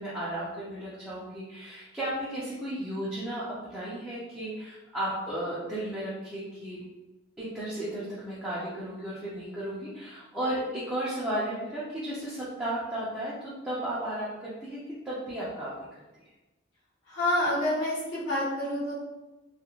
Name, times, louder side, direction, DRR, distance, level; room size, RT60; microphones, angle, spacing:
voice 1, 0.0-6.8 7.4-16.0, right 1 dB, 5° right, -10 dB, 0.4 m, -34 dB
voice 2, 17.1-18.9, left 1 dB, 80° left, -8 dB, 1.0 m, -28 dB
2.4 x 2.0 x 2.9 m, 1.1 s
head